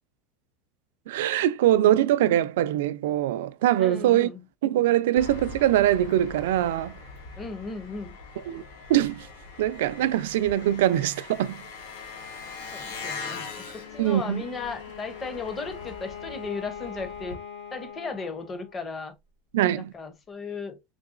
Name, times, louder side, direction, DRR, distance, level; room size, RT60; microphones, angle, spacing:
voice 1, 1.1-4.3 4.6-6.9 8.5-8.6 8.9-9.3 9.6-11.6 14.0-14.4 19.5-19.9, right 12 dB, 85° right, 0.3 m, -23 dB
voice 2, 3.8-4.4 7.4-8.2 12.7-17.4 17.7-19.1 19.6-20.8, left 4 dB, 15° left, 0.5 m, -36 dB
Engine, 5.2-17.4, left 4 dB, 90° left, 1.0 m, -42 dB
Bowed string instrument, 13.6-18.8, left 8 dB, 75° left, 2.2 m, -42 dB
3.8 x 3.0 x 2.4 m
supercardioid pair, 170°, 0 cm